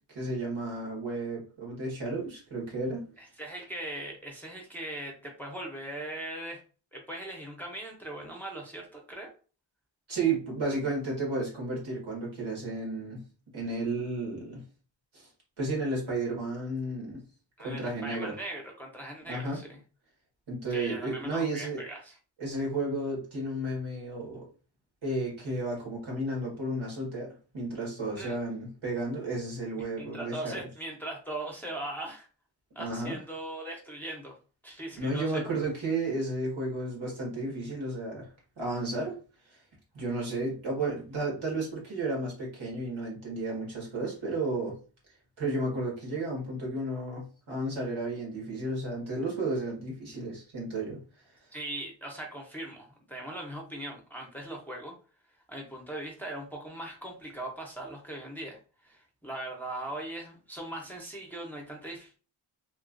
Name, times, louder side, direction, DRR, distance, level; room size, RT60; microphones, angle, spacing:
voice 1, 0.1-3.1 10.1-13.2 13.5-14.6 15.1-15.3 15.6-17.2 17.6-18.3 19.3-19.6 20.5-21.8 22.4-24.5 25.0-30.6 32.8-33.2 35.0-38.3 38.6-39.2 39.9-44.8 45.4-51.0, right 2 dB, 80° right, -2 dB, 1.5 m, -33 dB
voice 2, 3.2-6.6 6.9-9.3 17.6-19.8 20.7-22.2 28.2-28.4 30.0-32.3 32.7-34.4 34.6-35.4 51.5-54.9 55.5-62.2, right 1 dB, 5° left, 0 dB, 0.7 m, -40 dB
3.1 x 2.4 x 2.5 m, 0.37 s
wide cardioid pair, 95°, 47 cm